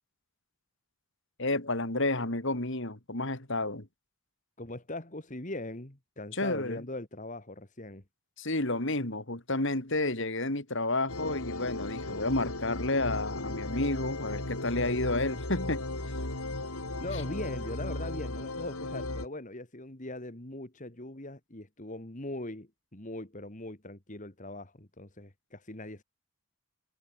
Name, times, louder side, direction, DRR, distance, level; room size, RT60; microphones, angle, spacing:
voice 1, 1.4-3.9 6.3-6.8 8.4-15.8, left 2 dB, 55° left, 3.1 m, -31 dB
voice 2, 4.6-8.0 16.9-26.0, left 2 dB, 35° left, 2.2 m, -41 dB
sound 1, 11.1-19.3, left 2 dB, 85° left, 3.8 m, -36 dB
head